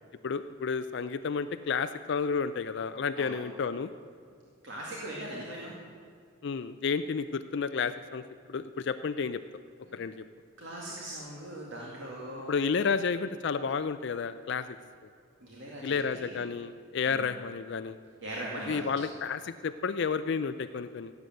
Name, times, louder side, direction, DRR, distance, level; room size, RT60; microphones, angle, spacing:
voice 1, 0.2-3.9 6.4-8.2 8.5-9.4 9.9-10.2 12.5-14.8 15.8-18.0 18.7-21.1, left 5 dB, 60° left, 10 dB, 0.4 m, -31 dB
voice 2, 4.6-5.7 9.9-10.0 10.6-12.7 15.4-16.4 17.1-17.3 18.2-18.9, right 1 dB, 65° right, -3 dB, 2.2 m, -40 dB
17.0 x 8.2 x 7.7 m, 2.2 s
head